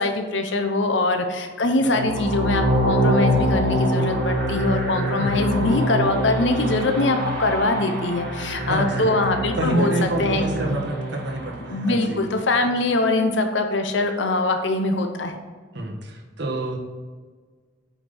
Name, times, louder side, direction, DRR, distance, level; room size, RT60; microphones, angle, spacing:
voice 1, 0.0-9.9 10.2-10.4 10.7-10.8 11.7-15.4, left 2 dB, 75° left, 6 dB, 0.9 m, -23 dB
sound 1, 1.8-11.9, equal, 85° right, 2.7 m, -24 dB
voice 2, 8.7-9.1 9.6-12.2 15.7-16.8, right 2 dB, 70° right, 1 dB, 1.6 m, -27 dB
8.3 x 5.1 x 5.5 m, 1.5 s
head